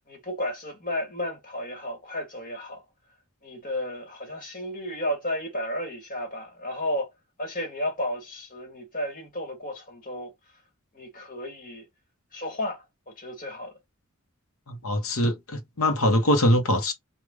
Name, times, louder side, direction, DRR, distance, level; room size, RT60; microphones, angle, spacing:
voice 1, 0.1-2.8 3.4-7.1 7.4-10.3 10.9-11.8 12.3-13.7, left 1 dB, 40° left, 1.6 m, -33 dB
voice 2, 14.7-16.9, left 1 dB, 85° left, 0.9 m, -23 dB
3.2 x 2.4 x 3.6 m
head